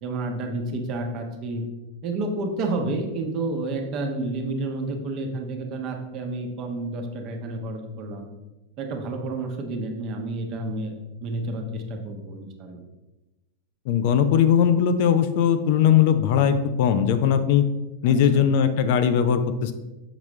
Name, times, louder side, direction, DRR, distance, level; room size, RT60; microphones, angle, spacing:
voice 1, 0.0-1.7 2.0-8.3 8.8-10.9 11.2-12.8 18.0-18.4, right 2 dB, 35° right, 4 dB, 1.1 m, -30 dB
voice 2, 13.9-17.7 18.0-19.7, left 8 dB, 50° left, 9 dB, 0.5 m, -19 dB
7.0 x 6.0 x 3.3 m, 1.0 s
figure-of-eight pair, 90°, 0 cm